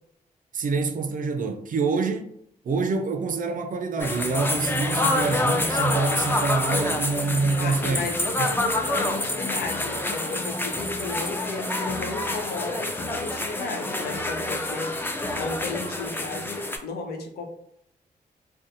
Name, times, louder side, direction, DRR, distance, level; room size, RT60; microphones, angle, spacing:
voice 1, 0.5-2.3 2.6-8.1 8.4-8.5, right 4 dB, 55° right, 0.4 m, -26 dB
sound 1, 4.0-16.8, left 2 dB, 15° left, 0.4 m, -27 dB
voice 2, 7.6-14.9 15.3-17.5, left 3 dB, 80° left, 0.5 m, -34 dB
2.6 x 2.2 x 2.5 m
supercardioid pair, 50°, 16 cm